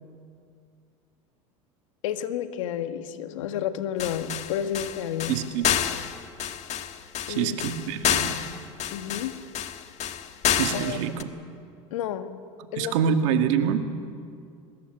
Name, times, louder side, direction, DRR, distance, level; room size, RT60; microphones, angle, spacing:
voice 1, 2.0-5.4 7.3-7.7 8.9-9.4 10.7-11.0 11.9-12.3 12.7-12.9, left 9 dB, 80° left, 8 dB, 1.7 m, -31 dB
sound 1, 4.0-11.2, left 9 dB, 45° left, 1.7 m, -28 dB
voice 2, 5.3-5.7 7.3-8.6 10.6-11.3 12.8-13.8, right 8 dB, 70° right, 6 dB, 2.1 m, -26 dB
23.0 x 20.5 x 8.0 m, 2.3 s
hypercardioid pair, 90°, 17 cm